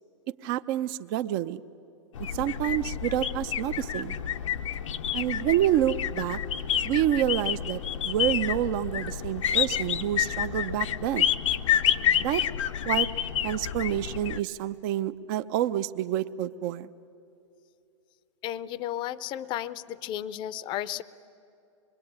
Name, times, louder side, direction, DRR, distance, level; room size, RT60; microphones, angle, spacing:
voice 1, 0.4-1.6 2.2-4.2 5.1-6.4 6.8-7.8 8.0-11.3 12.2-12.4 12.9-13.1 13.4-16.9, right 12 dB, 45° right, 11 dB, 0.7 m, -28 dB
sound 1, 2.1-14.4, left 9 dB, 75° left, 0.8 m, -29 dB
voice 2, 18.4-21.0, left 12 dB, 30° left, 18 dB, 0.6 m, -33 dB
25.5 x 22.0 x 8.8 m, 2.7 s
hypercardioid pair, 130°, 16 cm